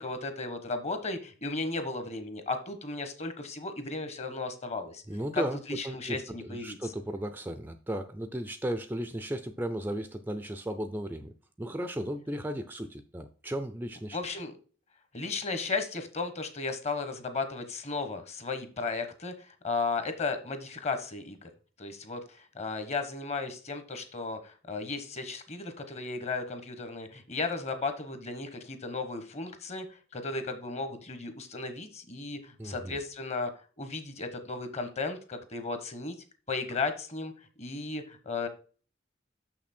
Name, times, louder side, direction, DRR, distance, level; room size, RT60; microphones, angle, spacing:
voice 1, 0.0-5.0 5.3-5.4 5.7-6.8 14.1-14.5 15.1-21.5 21.8-33.5 33.8-36.2 36.5-37.3 37.6-38.5, left 3 dB, 35° left, 8 dB, 1.1 m, -35 dB
voice 2, 5.1-5.6 5.8-14.2 32.6-33.0 36.7-36.8, right 1 dB, 10° right, 9 dB, 0.4 m, -35 dB
6.7 x 5.9 x 4.3 m, 0.39 s
head